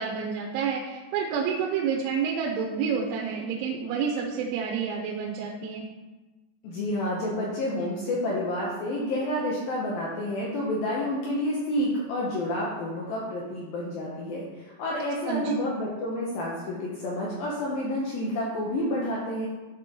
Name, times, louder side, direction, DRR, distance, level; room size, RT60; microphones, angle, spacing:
voice 1, 0.0-5.9 15.3-15.5, right 6 dB, 90° right, -1 dB, 3.2 m, -29 dB
voice 2, 6.6-14.5 14.8-19.5, left 1 dB, 80° left, -4 dB, 2.1 m, -29 dB
11.0 x 4.3 x 3.7 m, 1.2 s
omnidirectional pair, 5.4 m